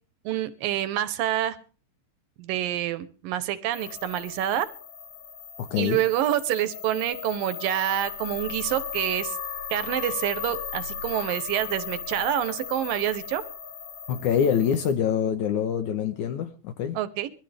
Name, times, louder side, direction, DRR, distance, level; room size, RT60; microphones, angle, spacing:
voice 1, 0.3-1.6 2.4-4.7 5.7-9.4 9.7-13.4 17.0-17.3, right 12 dB, 75° right, 2.4 m, -27 dB
sound 1, 3.7-14.9, left 6 dB, 45° left, 2.4 m, -36 dB
voice 2, 5.6-6.0 14.1-17.0, left 8 dB, 70° left, 2.1 m, -25 dB
22.5 x 13.5 x 3.4 m
omnidirectional pair, 4.3 m